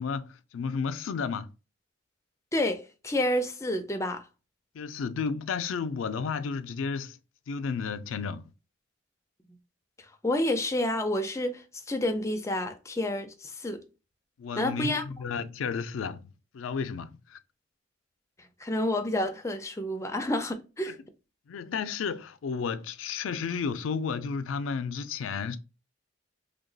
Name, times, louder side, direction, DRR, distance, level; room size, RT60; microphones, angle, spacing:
voice 1, 0.0-1.5 4.7-7.2 7.5-8.5 14.4-16.3 16.5-17.4 20.9-21.0 21.5-25.6, left 5 dB, 85° left, 0.4 m, -32 dB
voice 2, 2.5-4.3 10.0-13.8 14.6-15.0 18.6-21.0, left 1 dB, 15° left, 0.4 m, -29 dB
2.9 x 2.2 x 3.8 m
head